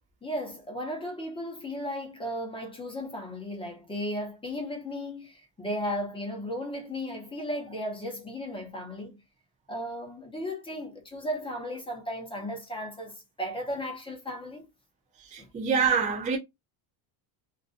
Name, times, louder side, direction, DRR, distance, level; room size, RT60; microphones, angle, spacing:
voice 1, 0.2-9.2 9.7-14.7 15.4-15.5, equal, 10° left, 0.8 m, -35 dB
voice 2, 15.2-16.4, right 6 dB, 20° right, 0.3 m, -26 dB
2.5 x 2.5 x 2.4 m
cardioid pair, 150°, 48 cm